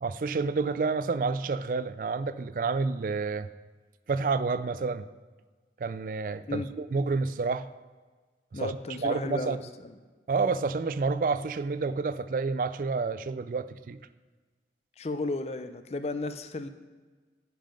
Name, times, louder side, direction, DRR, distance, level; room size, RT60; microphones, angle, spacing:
voice 1, 0.0-3.5 4.1-5.1 5.8-7.7 8.6-8.7 9.0-9.6 10.3-14.0, right 4 dB, 50° right, 14 dB, 0.3 m, -29 dB
voice 2, 8.5-9.9 15.0-16.7, left 2 dB, 35° left, 10 dB, 0.5 m, -34 dB
10.0 x 5.7 x 5.1 m, 1.4 s
head